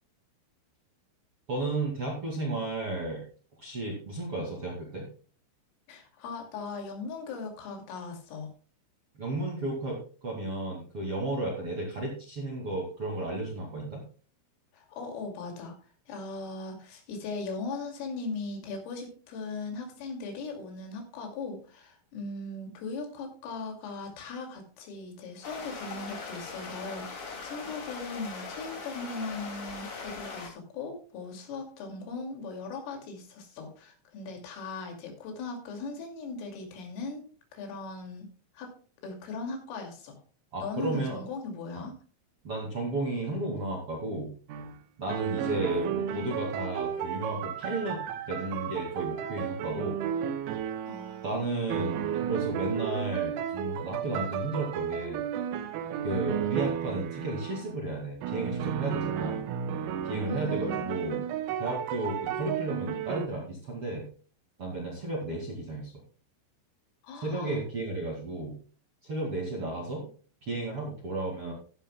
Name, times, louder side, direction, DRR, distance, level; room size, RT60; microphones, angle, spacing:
voice 1, 1.5-3.2 3.6-5.1 9.1-14.0 40.5-41.2 41.8-41.9 42.4-44.3 45.0-50.0 51.2-55.2 56.0-59.4 60.0-61.2 61.6-64.1 64.6-65.9 67.2-68.6 69.0-70.1 70.4-71.5, right 2 dB, 40° right, -2 dB, 2.1 m, -33 dB
voice 2, 5.9-8.5 14.7-37.2 37.5-38.3 38.5-38.7 39.0-40.2 40.6-41.9 50.9-51.8 60.3-61.2 67.0-67.6, left 3 dB, 75° left, 2 dB, 5.0 m, -39 dB
sound 1, 25.4-30.5, left 4 dB, 40° left, 3.0 m, -40 dB
sound 2, 44.5-44.8 45.1-51.4 51.7-57.7 58.2-63.3, right 9 dB, 90° right, 3.7 m, -33 dB
14.5 x 11.5 x 2.3 m, 0.39 s
omnidirectional pair, 6.0 m